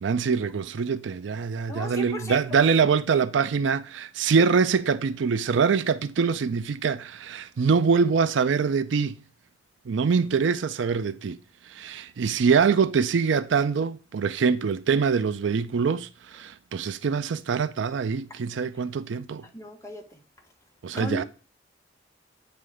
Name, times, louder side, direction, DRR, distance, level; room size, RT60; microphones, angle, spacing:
voice 1, 0.0-9.2 9.9-11.4 11.7-19.4 20.8-21.2, right 5 dB, 70° right, 0.4 m, -24 dB
voice 2, 1.7-2.6 19.5-20.0 20.9-21.2, left 1 dB, 15° left, 1.4 m, -35 dB
9.3 x 3.3 x 4.8 m
head